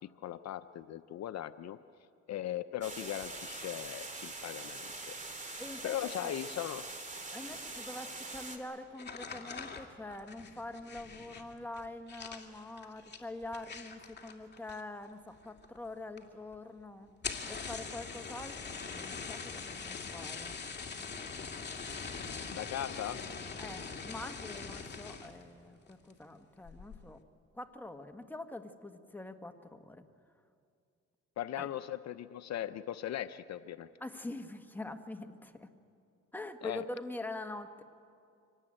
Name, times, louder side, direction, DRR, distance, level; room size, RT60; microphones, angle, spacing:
voice 1, 0.0-1.8 2.3-5.1 5.5-6.9 22.5-23.2 31.4-33.9 36.6-36.8, left 12 dB, 60° left, 12 dB, 0.7 m, -39 dB
sound 1, 2.8-8.6, right 3 dB, 25° right, 2.7 m, -43 dB
voice 2, 5.6-6.3 7.3-17.1 17.5-20.5 23.6-27.2 27.5-30.1 31.6-31.7 34.0-35.7 36.3-37.8, left 2 dB, 5° left, 6 dB, 1.4 m, -44 dB
sound 2, 8.9-15.1 15.4-15.9 16.2-16.3 16.5-16.6 17.1-25.4 25.9-26.2 26.6-27.0, left 5 dB, 35° left, 2.3 m, -43 dB
25.0 x 18.0 x 8.8 m, 2.4 s
cardioid pair, 90°, 30 cm